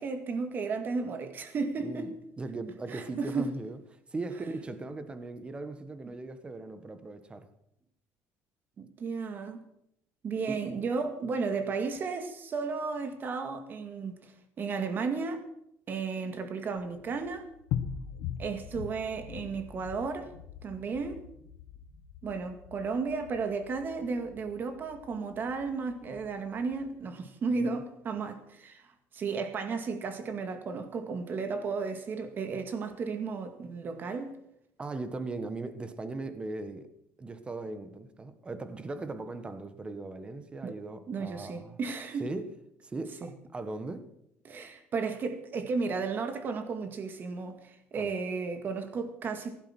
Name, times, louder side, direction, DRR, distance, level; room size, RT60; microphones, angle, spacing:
voice 1, 0.0-2.1 2.9-3.5 8.8-9.6 10.2-14.3 14.6-15.5 15.9-17.5 18.4-20.3 20.6-21.2 22.2-34.4 40.6-40.8 41.1-42.3 43.2-43.3 44.4-49.6, right 4 dB, 35° right, 2.0 m, -34 dB
voice 2, 2.4-3.8 4.1-7.5 10.5-10.6 27.6-27.8 34.8-36.9 37.2-41.8 42.2-42.5 42.8-44.1 47.9-48.1, right 3 dB, 20° right, 1.4 m, -38 dB
sound 1, 16.8-26.9, left 8 dB, 80° left, 1.4 m, -42 dB
15.5 x 11.5 x 6.1 m
cardioid pair, 130°, 5 cm